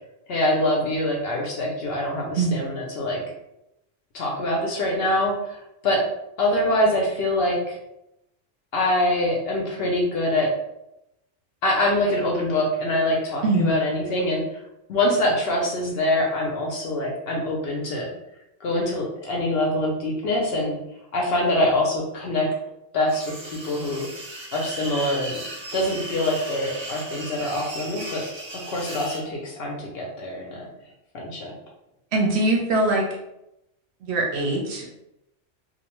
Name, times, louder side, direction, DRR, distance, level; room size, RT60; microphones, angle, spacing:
voice 1, 0.3-3.2 4.1-6.0 6.4-7.8 8.7-10.5 11.6-14.4 14.9-18.1 18.6-20.8 21.1-22.5 22.9-24.1 24.5-25.4 25.7-28.2 28.5-30.7 31.1-31.5, left 1 dB, 60° left, -1 dB, 0.7 m, -24 dB
voice 2, 13.4-13.7 32.1-33.2 34.0-34.9, right 2 dB, 65° right, -1 dB, 0.8 m, -22 dB
sound 1, 23.1-29.2, right 1 dB, 50° right, 0.3 m, -36 dB
2.5 x 2.1 x 2.9 m, 0.85 s
omnidirectional pair, 1.3 m